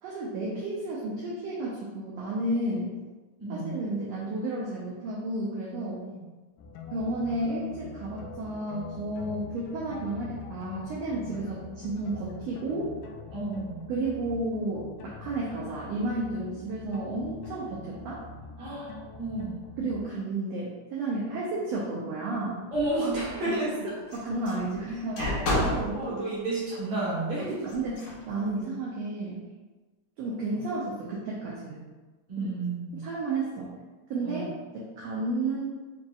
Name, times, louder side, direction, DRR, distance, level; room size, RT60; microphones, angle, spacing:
voice 1, 0.0-2.9 3.5-6.0 6.9-12.9 13.9-18.2 19.8-22.6 23.4-23.6 24.1-26.0 27.4-29.4 30.2-31.8 32.4-32.5 32.9-33.7 34.1-34.5 34.7-35.7, right 2 dB, 85° right, -5 dB, 1.4 m, -32 dB
voice 2, 3.4-3.7 6.0-6.2 13.3-13.8 18.6-19.6 22.7-23.7 25.2-27.6 32.3-33.0 34.2-34.5, right 2 dB, 65° right, -8 dB, 1.8 m, -32 dB
sound 1, 6.6-20.1, left 4 dB, 90° left, 2.1 m, -44 dB
sound 2, 22.7-23.4 24.1-26.0 27.7-28.2, left 1 dB, 70° left, 1.6 m, -31 dB
4.9 x 2.8 x 2.3 m, 1.3 s
omnidirectional pair, 3.5 m